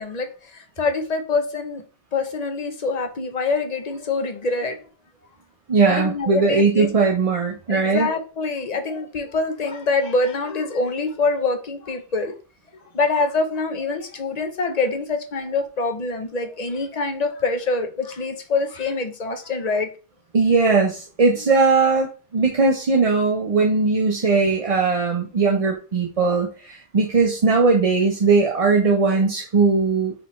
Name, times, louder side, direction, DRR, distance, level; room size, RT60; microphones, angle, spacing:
voice 1, 0.0-1.8 2.1-4.8 5.9-6.9 7.7-12.3 12.9-19.9, left 3 dB, 45° left, 6 dB, 0.8 m, -25 dB
voice 2, 5.7-8.1 20.3-30.1, right 4 dB, 40° right, 0 dB, 0.7 m, -19 dB
5.0 x 3.4 x 3.2 m, 0.36 s
omnidirectional pair, 1.1 m